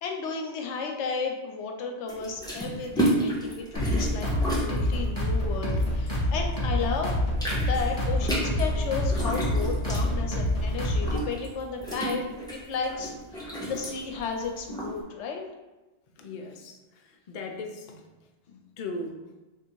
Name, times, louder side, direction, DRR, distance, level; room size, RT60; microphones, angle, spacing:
voice 1, 0.0-7.2 7.7-15.4, left 5 dB, 90° left, 3 dB, 0.9 m, -33 dB
sound 1, 2.1-6.6 6.9-14.9, right 1 dB, 5° left, 0.7 m, -32 dB
sound 2, 3.7-11.3, left 1 dB, 30° left, 1.2 m, -27 dB
voice 2, 16.2-18.0 18.5-19.2, left 2 dB, 55° left, 2 dB, 0.6 m, -38 dB
3.2 x 2.6 x 4.5 m, 1.1 s
omnidirectional pair, 1.2 m